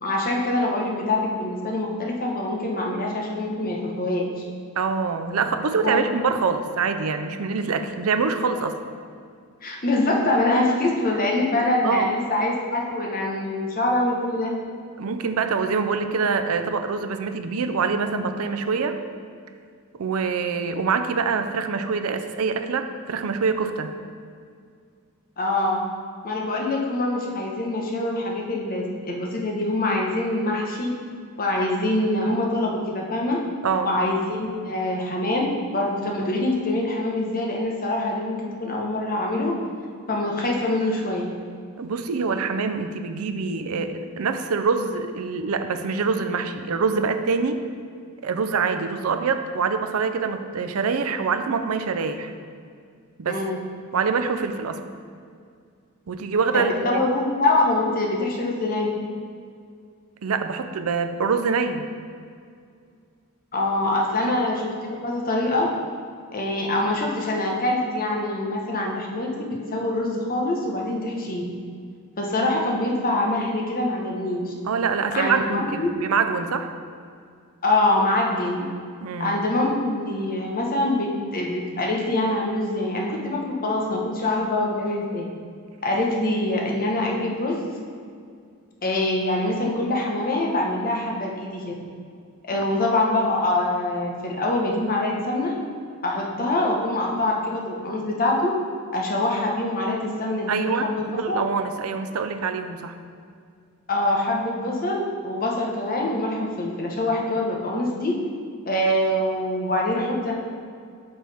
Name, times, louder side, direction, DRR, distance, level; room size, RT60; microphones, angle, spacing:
voice 1, 0.0-4.3 5.8-6.0 9.6-14.5 25.4-25.8 26.2-30.9 31.4-33.4 33.8-39.5 40.1-41.3 53.2-53.6 56.5-58.9 63.5-65.7 66.3-71.4 72.2-74.5 75.1-75.9 77.6-78.6 79.2-85.2 85.8-87.6 88.8-91.7 92.5-95.5 96.0-98.5 98.9-101.4 103.9-108.2 108.7-110.3, left 2 dB, 40° left, -1 dB, 1.1 m, -24 dB
voice 2, 4.8-8.8 11.8-12.1 15.0-19.0 20.0-23.9 33.6-33.9 41.8-47.6 48.2-52.3 53.2-53.4 53.9-54.8 56.1-57.0 60.2-61.9 64.2-64.3 74.6-76.7 79.0-79.4 92.5-92.7 100.5-103.0, right 5 dB, 70° right, 9 dB, 0.5 m, -25 dB
8.8 x 6.3 x 3.5 m, 2.2 s
head